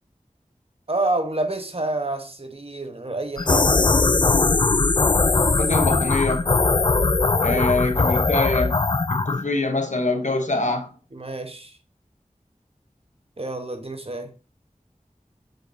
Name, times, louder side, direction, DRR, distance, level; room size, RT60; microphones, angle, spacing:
voice 1, 0.9-3.9 7.3-7.7 11.1-11.8 13.4-14.3, right 2 dB, 45° right, 1.1 m, -28 dB
sound 1, 3.4-9.4, left 3 dB, 35° left, 0.4 m, -20 dB
voice 2, 5.6-6.5 7.4-8.8 9.1-10.9, left 2 dB, 65° left, 1.0 m, -24 dB
7.7 x 5.0 x 2.7 m
wide cardioid pair, 45°, 13 cm